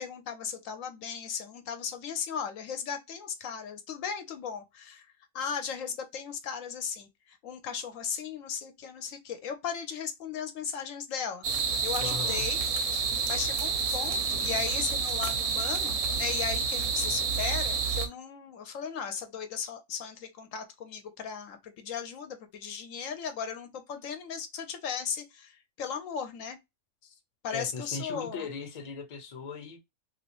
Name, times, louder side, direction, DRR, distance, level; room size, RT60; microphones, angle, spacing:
voice 1, 0.0-5.1 5.3-11.5 11.8-12.6 13.3-26.6 27.4-28.5, left 7 dB, 75° left, 0.9 m, -36 dB
sound 1, 11.4-18.1, right 5 dB, 85° right, 1.1 m, -29 dB
voice 2, 12.0-12.5 27.0-27.1 27.5-29.8, left 4 dB, 40° left, 0.7 m, -38 dB
3.0 x 2.8 x 2.9 m
omnidirectional pair, 1.4 m